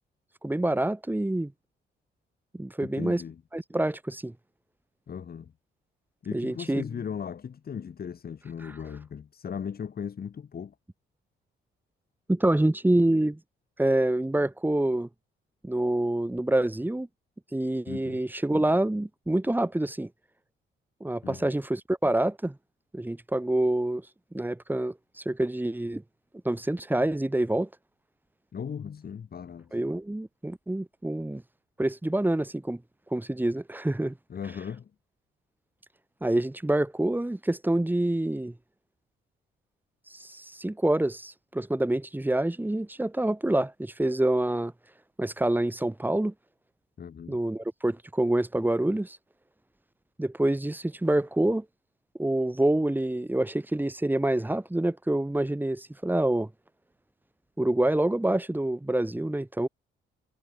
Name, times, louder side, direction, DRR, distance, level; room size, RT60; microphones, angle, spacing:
voice 1, 0.4-1.5 2.5-3.2 3.5-4.3 6.3-6.8 8.6-8.8 12.3-13.4 13.8-15.1 15.6-17.1 17.5-20.1 21.0-22.5 22.9-26.0 26.4-27.7 29.7-31.4 31.8-32.8 33.1-34.1 36.2-38.5 40.1-44.7 45.2-46.3 47.3-49.2 50.2-51.6 52.2-56.5 57.6-59.7, right 1 dB, 10° right, 6.2 m, -27 dB
voice 2, 2.8-3.4 5.1-5.5 6.2-10.7 17.9-18.2 21.2-21.5 28.5-29.8 34.3-34.9 47.0-47.4, left 7 dB, 50° left, 6.0 m, -37 dB
cardioid pair, 90°, 20 cm